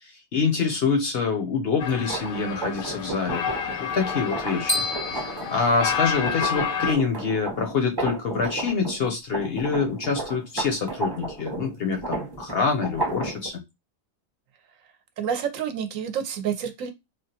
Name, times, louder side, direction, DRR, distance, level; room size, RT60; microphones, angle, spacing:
voice 1, 0.0-3.4 3.8-4.9 5.1-13.6, left 5 dB, 60° left, 3 dB, 0.7 m, -26 dB
sound 1, 1.8-6.9, left 7 dB, 80° left, 1.0 m, -30 dB
sound 2, 2.0-9.0 9.3-13.5, right 3 dB, 20° right, 0.7 m, -33 dB
sound 3, 4.7-6.6, left 2 dB, 15° left, 0.6 m, -31 dB
voice 2, 15.2-16.9, right 8 dB, 75° right, 8 dB, 1.0 m, -28 dB
3.1 x 2.2 x 2.8 m, 0.21 s
omnidirectional pair, 1.4 m